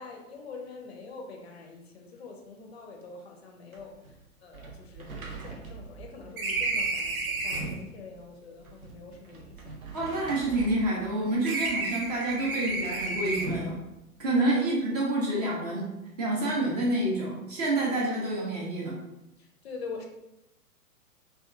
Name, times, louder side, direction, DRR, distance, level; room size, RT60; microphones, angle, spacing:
voice 1, 0.0-4.0 4.4-9.8 14.3-14.5 19.6-20.1, left 4 dB, 45° left, 2 dB, 0.5 m, -44 dB
sound 1, 3.7-3.8 4.1-4.2 4.5-7.8 8.7-11.1 11.4-13.7, right 3 dB, 70° right, 0.6 m, -33 dB
voice 2, 9.9-13.8 14.2-15.9 16.2-19.0, right 1 dB, 30° right, -3 dB, 0.4 m, -28 dB
2.7 x 2.2 x 2.3 m, 0.93 s
figure-of-eight pair, 105°, 44 cm